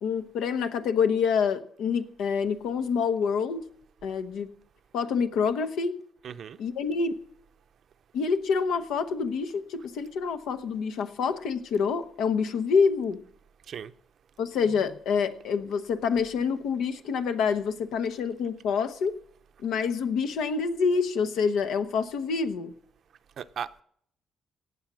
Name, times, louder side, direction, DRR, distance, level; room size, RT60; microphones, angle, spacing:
voice 1, 0.0-3.6 4.0-4.5 4.9-6.0 6.6-7.2 8.1-13.2 14.4-19.1 19.6-22.7, left 5 dB, 85° left, 1.1 m, -27 dB
voice 2, 6.2-6.6 13.7-13.9 23.4-23.8, right 8 dB, 60° right, 0.7 m, -37 dB
17.5 x 7.1 x 6.2 m
cardioid pair, 90°, 0 cm